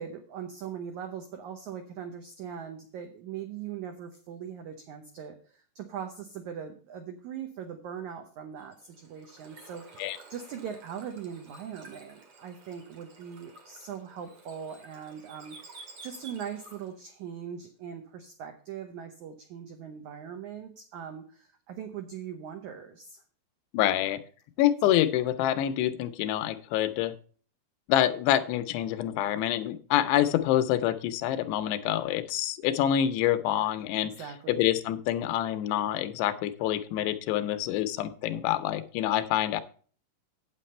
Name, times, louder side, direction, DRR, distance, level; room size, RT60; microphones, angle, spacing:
voice 1, 0.0-23.2 24.8-24.9 34.0-34.7, right 8 dB, 90° right, 6 dB, 1.7 m, -41 dB
Bird / Water, 8.6-17.0, right 3 dB, 45° right, 2.3 m, -52 dB
voice 2, 23.7-24.2 24.6-27.1 27.9-34.1 34.5-39.6, left 12 dB, 90° left, 11 dB, 2.9 m, -26 dB
9.0 x 8.5 x 4.3 m, 0.42 s
omnidirectional pair, 4.7 m